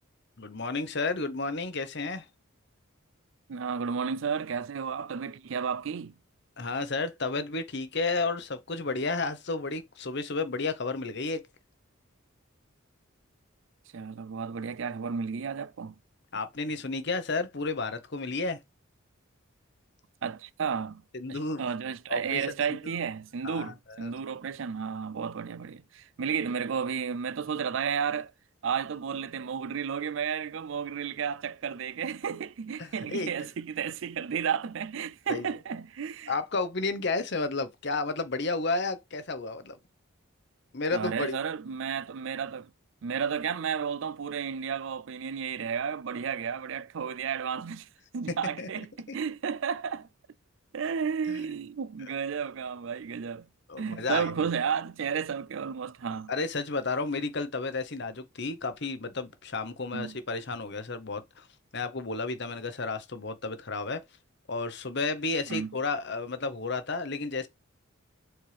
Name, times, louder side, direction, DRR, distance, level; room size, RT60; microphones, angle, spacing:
voice 1, 0.4-2.3 6.6-11.4 16.3-18.6 21.1-21.7 22.1-22.4 22.7-22.8 23.4-24.1 32.8-33.3 35.3-35.5 36.3-39.8 40.7-41.4 48.3-48.8 51.3-51.4 53.7-54.5 56.3-61.5 61.7-64.0 64.5-67.5, left 3 dB, 55° left, 1.0 m, -32 dB
voice 2, 3.5-6.1 13.9-15.9 20.2-21.0 21.3-28.3 28.6-36.3 40.9-42.7 43.0-47.9 48.1-50.1 50.7-53.5 53.8-56.3 59.9-60.2 65.5-65.7, right 6 dB, 65° right, 0.4 m, -32 dB
7.8 x 4.3 x 3.4 m
head